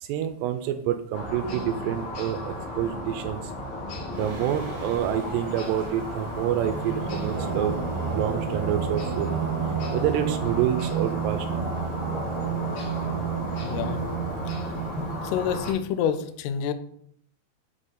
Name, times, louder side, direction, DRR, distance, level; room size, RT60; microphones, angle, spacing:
voice 1, 0.0-3.5 4.1-9.3 9.9-11.7, right 11 dB, 80° right, 8 dB, 2.5 m, -28 dB
sound 1, 1.1-15.7, left 1 dB, 55° left, 2.1 m, -34 dB
Singing, 4.1-15.5, right 7 dB, 60° right, 2.6 m, -31 dB
voice 2, 13.6-14.0 15.0-16.7, left 8 dB, 80° left, 10 dB, 2.3 m, -28 dB
7.2 x 4.2 x 4.9 m, 0.65 s
omnidirectional pair, 5.2 m